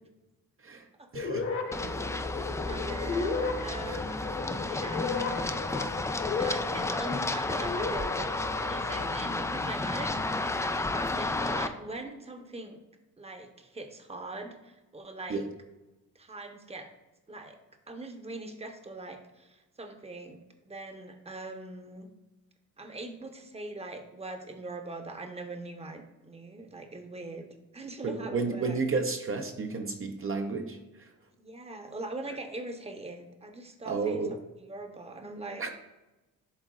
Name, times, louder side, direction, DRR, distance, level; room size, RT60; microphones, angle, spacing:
sound 1, 1.1-9.1, left 4 dB, 40° left, 1.1 m, -35 dB
voice 1, 1.1-1.5 1.8-2.0 3.8-4.2 15.3-15.5 28.0-31.1 33.9-34.4 35.6-35.7, right 4 dB, 40° right, 4 dB, 0.7 m, -32 dB
Run, 1.7-11.7, left 2 dB, 10° left, 0.3 m, -32 dB
voice 2, 2.6-5.1 6.4-12.8 13.2-15.4 16.1-16.9 17.3-17.6 17.9-20.4 20.6-22.1 22.8-27.5 27.7-28.8 31.4-35.7, right 2 dB, 20° right, 5 dB, 0.9 m, -42 dB
11.0 x 3.9 x 2.4 m, 1.1 s
cardioid pair, 85°, 33 cm